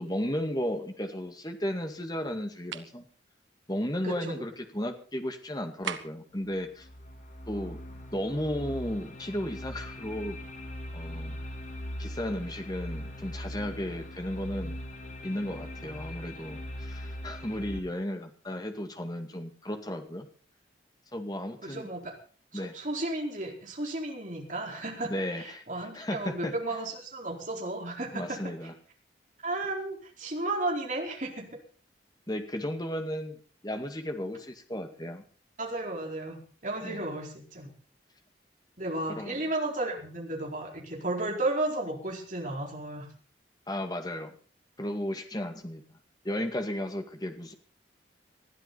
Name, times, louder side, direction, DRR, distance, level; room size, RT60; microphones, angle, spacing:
voice 1, 0.0-3.1 3.7-6.9 7.5-7.8 8.1-10.4 10.9-11.4 12.0-14.8 15.2-20.3 21.1-21.9 22.5-22.7 25.1-25.6 25.9-26.5 28.1-28.7 32.3-33.4 33.6-35.2 36.8-37.1 39.1-39.4 43.7-44.4 44.8-45.8 46.2-47.5, equal, 20° left, 6 dB, 2.1 m, -34 dB
sound 1, 2.7-3.0 5.8-6.3, right 7 dB, 80° right, 1.6 m, -37 dB
voice 2, 4.0-4.4 21.6-22.1 22.5-25.1 25.4-28.4 29.4-31.5 35.6-37.7 38.8-43.1, right 2 dB, 40° right, 1 dB, 4.5 m, -33 dB
sound 2, 6.4-17.8, left 1 dB, 40° left, 2.6 m, -40 dB
21.0 x 13.5 x 4.2 m, 0.40 s
head